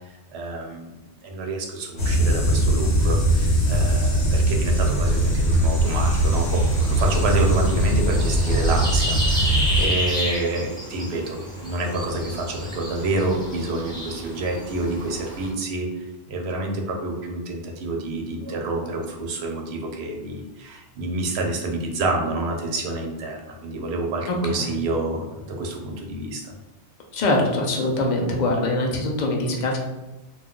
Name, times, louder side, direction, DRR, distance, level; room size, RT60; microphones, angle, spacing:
voice 1, 0.3-1.0 1.2-26.5, right 2 dB, 70° right, 1 dB, 0.8 m, -28 dB
sound 1, 2.0-9.9, right 1 dB, 75° left, 1.1 m, -20 dB
sound 2, 5.9-15.5, left 1 dB, 5° left, 0.5 m, -32 dB
voice 2, 27.1-29.8, left 2 dB, 55° left, 1 dB, 0.5 m, -23 dB
2.3 x 2.3 x 3.6 m, 1.1 s
omnidirectional pair, 1.2 m